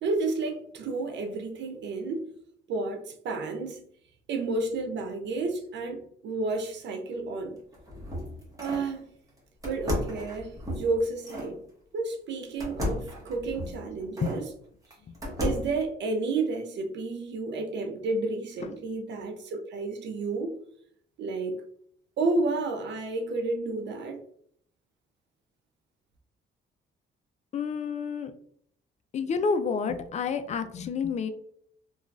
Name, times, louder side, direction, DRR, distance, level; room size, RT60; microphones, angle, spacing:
voice 1, 0.0-2.3 2.7-3.9 4.3-7.6 8.6-9.1 9.6-11.6 11.9-14.4 15.4-20.6 21.2-21.6 22.2-24.2, right 3 dB, 65° right, 0.5 m, -31 dB
sound 1, 7.6-8.9 9.6-11.5 12.6-14.4 14.9-15.8, left 1 dB, 15° right, 1.0 m, -34 dB
voice 2, 27.5-28.3 29.1-31.3, left 5 dB, 35° left, 0.4 m, -29 dB
2.9 x 2.3 x 2.5 m
cardioid pair, 90°, 20 cm